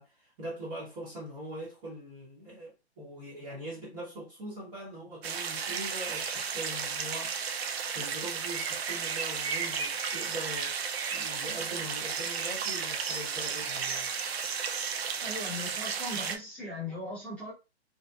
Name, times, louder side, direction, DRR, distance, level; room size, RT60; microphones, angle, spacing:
voice 1, 0.0-10.8 11.1-14.1, right 1 dB, 30° right, 0.9 m, -42 dB
sound 1, 5.2-16.4, right 6 dB, 65° right, 0.5 m, -33 dB
voice 2, 15.2-17.5, left 1 dB, 5° left, 0.9 m, -38 dB
2.7 x 2.1 x 2.2 m
hypercardioid pair, 150°, 33 cm